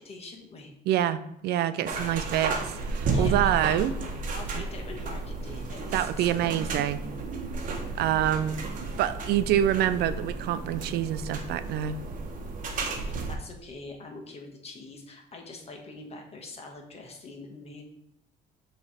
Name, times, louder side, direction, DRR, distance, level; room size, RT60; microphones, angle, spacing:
voice 1, 0.0-0.7 3.1-3.9 4.3-6.5 13.0-17.8, left 3 dB, 35° left, 3 dB, 1.3 m, -43 dB
voice 2, 0.9-3.9 5.9-7.0 8.0-8.6 9.0-12.0, right 11 dB, 75° right, 13 dB, 0.4 m, -26 dB
sound 1, 1.9-13.4, right 3 dB, 50° right, 1.0 m, -33 dB
7.1 x 3.3 x 4.2 m, 0.77 s
cardioid pair, 110°, 17 cm